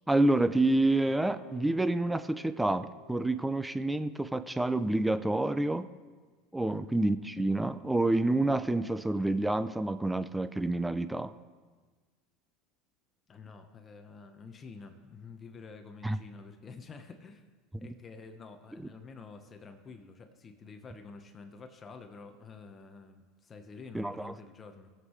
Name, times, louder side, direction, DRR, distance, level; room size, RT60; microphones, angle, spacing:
voice 1, 0.1-5.9 6.5-11.3 16.0-16.2 23.9-24.3, right 2 dB, 5° right, 13 dB, 0.5 m, -28 dB
sound 1, 1.0-6.1, equal, 10° left, 3.6 m, -54 dB
voice 2, 13.3-17.4 17.8-24.9, left 4 dB, 30° left, 6 dB, 1.0 m, -49 dB
19.5 x 7.4 x 3.2 m, 1.4 s
supercardioid pair, 100°, 0 cm